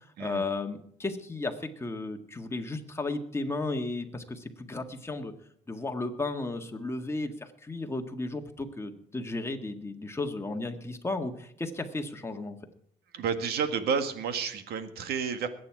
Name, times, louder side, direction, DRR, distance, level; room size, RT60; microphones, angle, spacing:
voice 1, 0.2-5.3 5.7-12.6, left 2 dB, 15° left, 5 dB, 1.8 m, -34 dB
voice 2, 13.1-15.5, right 6 dB, 70° right, 9 dB, 1.9 m, -30 dB
21.0 x 9.1 x 4.8 m, 0.69 s
cardioid pair, 110°, 17 cm